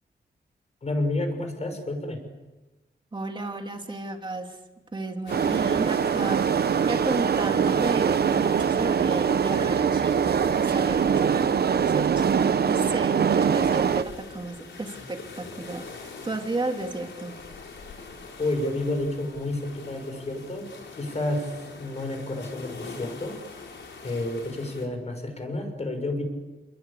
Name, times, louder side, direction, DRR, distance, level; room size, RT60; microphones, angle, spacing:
voice 1, 0.8-2.2 18.4-20.7 21.0-23.4 24.0-26.2, left 2 dB, 35° left, 5 dB, 6.2 m, -30 dB
voice 2, 3.1-4.6 4.9-6.5 6.8-17.4, right 2 dB, 25° right, 4 dB, 2.8 m, -33 dB
sound 1, 5.3-24.9, left 4 dB, 90° left, 5.0 m, -43 dB
sound 2, 5.3-14.0, right 7 dB, 60° right, 0.8 m, -23 dB
30.0 x 21.5 x 8.5 m, 1.1 s
wide cardioid pair, 160°, 19 cm